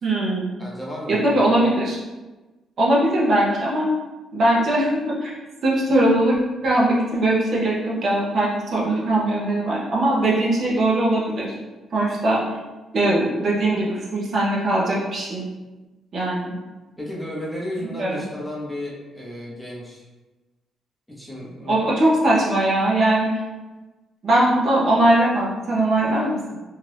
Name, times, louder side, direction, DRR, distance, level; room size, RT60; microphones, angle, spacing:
voice 1, 0.0-0.5 1.1-2.0 2.8-3.9 4.3-5.3 5.6-11.5 11.9-12.4 12.9-15.5 16.1-16.5 18.0-18.2 21.7-23.3 24.2-26.6, right 1 dB, 55° right, -5 dB, 0.8 m, -20 dB
voice 2, 0.6-1.5 17.0-20.1 21.1-21.8, left 1 dB, 5° left, -5 dB, 0.8 m, -33 dB
2.8 x 2.4 x 3.3 m, 1.1 s
cardioid pair, 90°, 0 cm